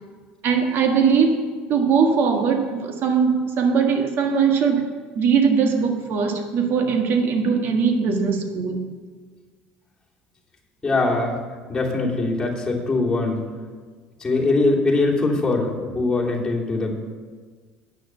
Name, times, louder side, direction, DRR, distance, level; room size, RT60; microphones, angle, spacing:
voice 1, 0.4-4.9 5.1-8.9, right 6 dB, 55° right, 4 dB, 1.6 m, -20 dB
voice 2, 10.8-11.4 11.7-13.4 14.2-16.9, left 2 dB, 15° left, -4 dB, 2.9 m, -22 dB
9.3 x 6.2 x 8.0 m, 1.5 s
supercardioid pair, 100°, 4 cm